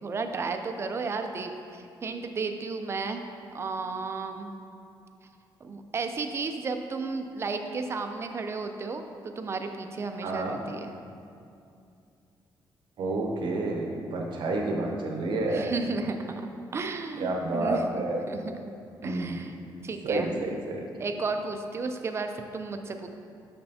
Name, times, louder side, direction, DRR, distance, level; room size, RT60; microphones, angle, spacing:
voice 1, 0.0-3.2 3.5-4.5 5.6-11.0 15.5-18.0 18.3-18.5 19.0-19.5 19.8-20.4 21.0-23.1, right 4 dB, 30° right, 6 dB, 0.4 m, -33 dB
voice 2, 10.2-10.6 13.0-15.7 17.2-18.2 19.0-19.4 20.0-20.9, right 2 dB, 65° right, 1 dB, 0.8 m, -29 dB
6.8 x 5.4 x 2.8 m, 2.5 s
cardioid pair, 145°, 9 cm